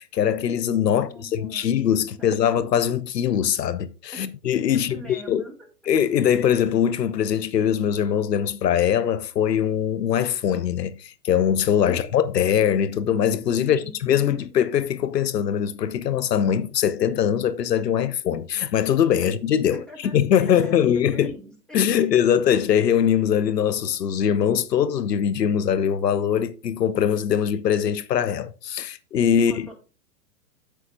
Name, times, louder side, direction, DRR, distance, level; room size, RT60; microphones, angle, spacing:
voice 1, 0.0-5.4 5.9-21.3 21.7-29.5, left 9 dB, 85° left, 0.8 m, -22 dB
voice 2, 0.9-1.7 2.2-2.4 4.1-4.2 4.7-5.6 11.9-12.1 13.6-14.2 14.5-14.7 19.7-20.9 21.1-21.8 29.5-29.7, right 1 dB, ahead, 2.1 m, -43 dB
10.0 x 7.8 x 2.6 m
hypercardioid pair, 135°, 47 cm